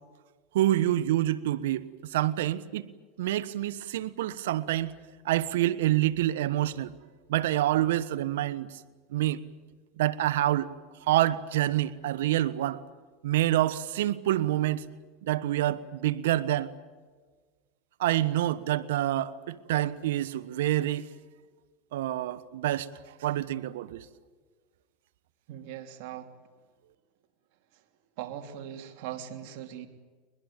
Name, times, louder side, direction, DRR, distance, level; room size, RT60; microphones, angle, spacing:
voice 1, 0.5-2.9 3.2-4.9 5.2-6.9 7.3-8.8 9.1-9.4 10.0-10.7 11.0-12.8 13.2-14.8 15.2-16.7 18.0-21.1 21.9-22.9 23.2-24.0, right 14 dB, 80° right, 1.1 m, -27 dB
voice 2, 25.5-26.3 28.2-29.9, right 10 dB, 65° right, 2.9 m, -40 dB
22.5 x 21.5 x 9.0 m
supercardioid pair, 115°, 0 cm